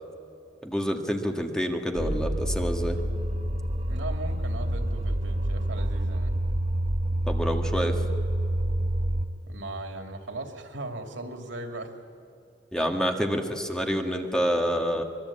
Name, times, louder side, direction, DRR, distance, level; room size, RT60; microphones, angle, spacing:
voice 1, 0.6-3.0 7.3-8.0 12.7-15.0, equal, 5° left, 4 dB, 1.7 m, -27 dB
sound 1, 1.9-9.3, right 1 dB, 35° right, 1.0 m, -27 dB
voice 2, 3.9-6.3 9.5-11.9, right 2 dB, 90° right, 5 dB, 2.6 m, -38 dB
25.5 x 22.0 x 8.7 m, 2.7 s
head